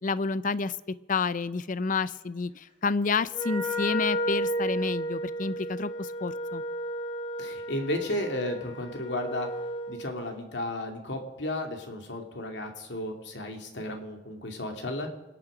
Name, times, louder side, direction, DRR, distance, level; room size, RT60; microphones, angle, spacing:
voice 1, 0.0-0.7 1.1-6.6, left 4 dB, 50° left, 16 dB, 0.6 m, -29 dB
Wind instrument woodwind instrument, 3.3-10.0, equal, 30° left, 4.0 m, -33 dB
voice 2, 7.4-9.5 9.9-15.1, left 1 dB, 75° left, 4 dB, 2.7 m, -33 dB
26.5 x 9.0 x 5.1 m, 1.1 s
head